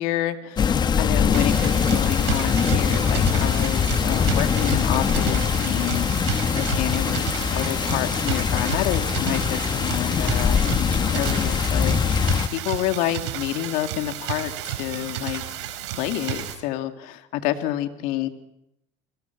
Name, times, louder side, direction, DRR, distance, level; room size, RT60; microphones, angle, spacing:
voice 1, 0.0-15.4 15.9-18.3, left 13 dB, 65° left, 7 dB, 2.2 m, -29 dB
sound 1, 0.6-12.5, left 7 dB, 30° left, 1.1 m, -22 dB
sound 2, 1.3-16.5, right 11 dB, 80° right, 4.4 m, -32 dB
29.5 x 21.5 x 5.9 m, 0.82 s
supercardioid pair, 100°, 15 cm